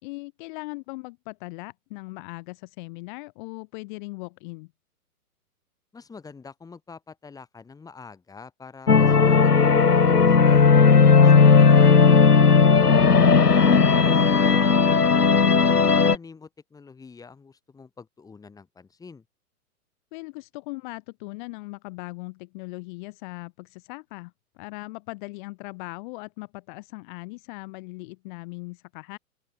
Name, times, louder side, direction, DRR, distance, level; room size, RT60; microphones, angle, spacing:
voice 1, 0.0-4.7 10.9-11.4 20.1-29.2, left 25 dB, 30° left, 2.9 m, -39 dB
voice 2, 5.9-10.7 11.1-15.1 15.6-19.2, left 5 dB, 10° left, 3.7 m, -45 dB
sound 1, 8.9-16.1, left 5 dB, 85° left, 1.1 m, -16 dB
open air
figure-of-eight pair, 115°, 45 cm